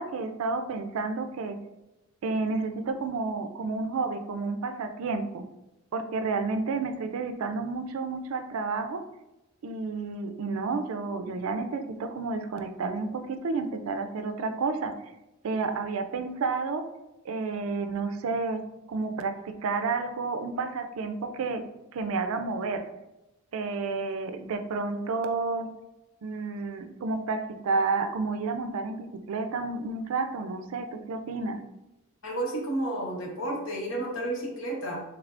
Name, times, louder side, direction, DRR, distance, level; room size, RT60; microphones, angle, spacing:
voice 1, 0.0-1.6 2.2-5.4 5.9-9.0 9.6-14.9 15.4-16.9 17.3-18.6 18.9-21.6 21.9-22.9 23.5-25.7 26.2-31.6, right 4 dB, 80° right, 8 dB, 0.4 m, -30 dB
voice 2, 32.2-35.0, right 1 dB, 65° left, -2 dB, 1.0 m, -31 dB
3.3 x 3.3 x 2.5 m, 0.98 s
head